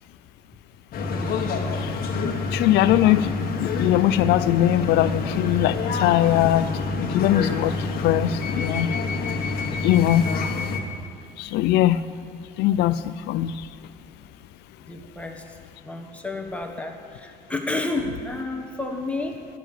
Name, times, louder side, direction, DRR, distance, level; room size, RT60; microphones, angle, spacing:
sound 1, 0.9-10.8, left 3 dB, 60° left, 1.4 m, -27 dB
voice 1, 2.5-6.7 7.1-8.9 9.8-10.2 11.4-12.0 12.6-13.5, left 13 dB, 85° left, 14 dB, 0.4 m, -21 dB
voice 2, 14.9-15.6 15.8-19.5, left 2 dB, 5° left, 3 dB, 1.3 m, -31 dB
10.5 x 6.8 x 8.9 m, 2.4 s
cardioid pair, 110°, 17 cm